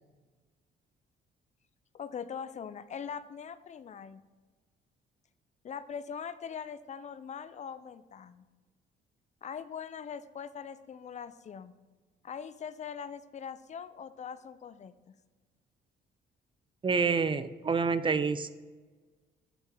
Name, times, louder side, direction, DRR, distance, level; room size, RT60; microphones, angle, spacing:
voice 1, 1.9-4.2 5.6-8.5 9.4-11.7 12.2-15.1, left 7 dB, 35° left, 13 dB, 0.4 m, -42 dB
voice 2, 16.8-18.5, right 5 dB, 25° right, 13 dB, 0.4 m, -27 dB
6.8 x 3.6 x 6.0 m, 1.3 s
cardioid pair, 90°, 20 cm